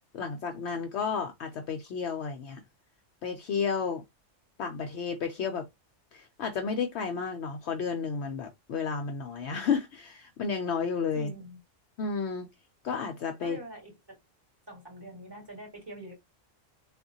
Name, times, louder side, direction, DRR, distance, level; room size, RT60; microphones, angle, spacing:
voice 1, 0.1-2.6 3.2-4.0 4.6-5.7 6.1-11.3 12.0-12.5 12.8-13.6, left 5 dB, 65° left, 0.8 m, -32 dB
voice 2, 11.1-11.6 13.4-14.2 14.7-16.1, right 1 dB, 20° right, 2.3 m, -44 dB
3.6 x 2.5 x 2.6 m
omnidirectional pair, 1.3 m